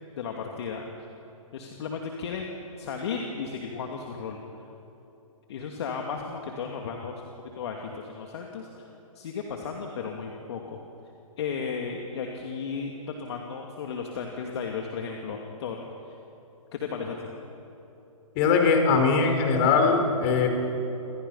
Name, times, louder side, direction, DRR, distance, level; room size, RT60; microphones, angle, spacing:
voice 1, 0.2-0.9 1.5-2.5 2.8-4.4 5.5-8.9 9.1-10.8 11.4-15.8 16.7-17.3, left 5 dB, 50° left, 1 dB, 2.6 m, -34 dB
voice 2, 18.3-20.5, left 5 dB, 35° left, 4 dB, 4.9 m, -21 dB
29.5 x 26.5 x 5.8 m, 3.0 s
figure-of-eight pair, 130°, 18 cm